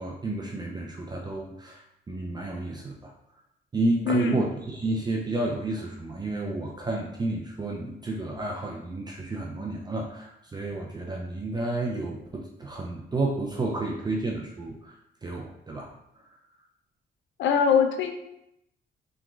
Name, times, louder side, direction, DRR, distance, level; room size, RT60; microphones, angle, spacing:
voice 1, 0.0-3.1 3.7-14.9 15.2-15.9, right 2 dB, 20° right, -1 dB, 0.4 m, -31 dB
voice 2, 4.0-4.4 17.4-18.1, left 6 dB, 75° left, 6 dB, 0.5 m, -22 dB
3.4 x 3.1 x 2.3 m, 0.84 s
cardioid pair, 90°, 20 cm